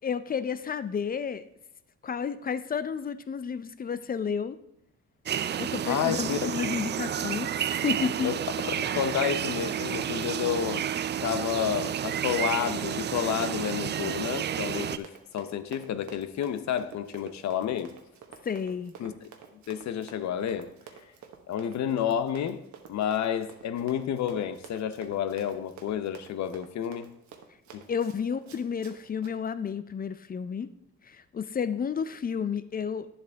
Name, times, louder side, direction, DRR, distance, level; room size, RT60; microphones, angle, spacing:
voice 1, 0.0-1.4 2.0-4.6 5.6-8.3 18.4-18.9 27.9-30.7 31.0-33.1, left 6 dB, 30° left, 13 dB, 0.5 m, -31 dB
sound 1, 5.3-15.0, right 9 dB, 35° right, 0.4 m, -31 dB
voice 2, 5.9-6.4 8.2-8.3 8.8-10.9 11.2-17.9 19.0-19.3 19.7-20.7 21.5-22.6 22.9-27.1 27.7-27.8, left 9 dB, 65° left, 12 dB, 0.7 m, -30 dB
Run, 12.2-29.4, right 7 dB, 65° right, 1.2 m, -50 dB
10.0 x 7.5 x 3.4 m, 0.81 s
cardioid pair, 90°, 30 cm